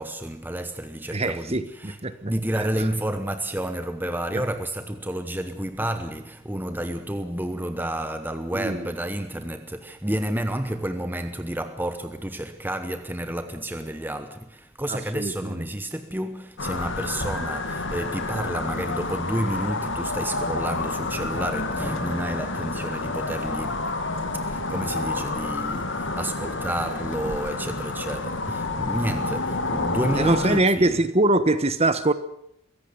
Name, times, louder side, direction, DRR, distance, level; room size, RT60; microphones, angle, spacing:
voice 1, 0.0-23.9 24.3-31.0, right 1 dB, 10° right, 1.0 m, -30 dB
voice 2, 1.1-2.3 4.3-4.4 8.5-8.8 14.9-15.7 30.2-32.1, right 2 dB, 30° right, 1.3 m, -23 dB
sound 1, 16.6-30.6, left 3 dB, 60° left, 2.3 m, -29 dB
23.0 x 16.5 x 8.2 m
head